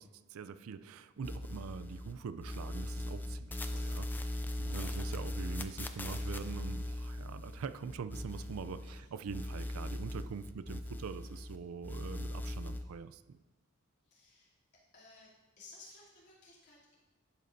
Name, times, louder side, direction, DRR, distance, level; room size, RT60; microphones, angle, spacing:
voice 1, 0.0-13.4, right 6 dB, 75° right, 13 dB, 0.4 m, -44 dB
sound 1, 1.2-2.1 2.4-9.0 9.3-11.6 11.8-12.8, left 1 dB, 10° left, 0.4 m, -39 dB
voice 2, 3.7-4.1 4.5-5.1 8.8-9.1 14.0-16.9, left 3 dB, 55° left, -6 dB, 2.7 m, -58 dB
11.0 x 8.1 x 2.6 m, 1.2 s
head